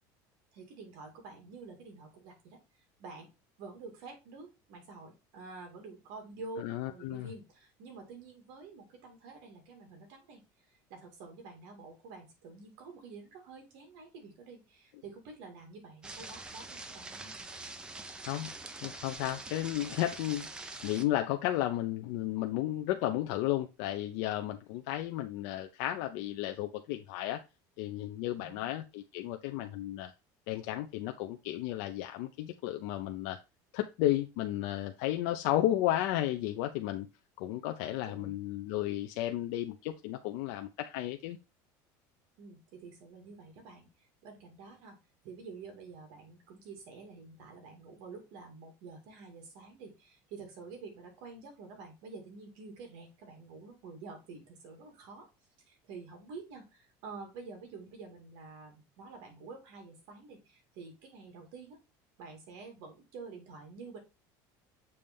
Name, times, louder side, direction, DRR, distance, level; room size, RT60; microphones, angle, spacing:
voice 1, 0.5-3.3 3.6-10.4 10.7-17.3 28.4-28.7 38.0-38.4 42.4-45.0 45.2-55.3 55.7-61.8 62.2-64.0, right 4 dB, 60° right, 3 dB, 2.3 m, -49 dB
voice 2, 6.6-7.3 18.3-18.5 18.8-20.5 20.8-27.4 27.8-30.1 30.5-33.4 33.7-37.1 37.4-41.4, left 14 dB, 60° left, 5 dB, 0.6 m, -33 dB
sound 1, 16.0-21.0, right 2 dB, 10° right, 0.6 m, -44 dB
7.0 x 3.3 x 5.2 m, 0.27 s
cardioid pair, 175°, 9 cm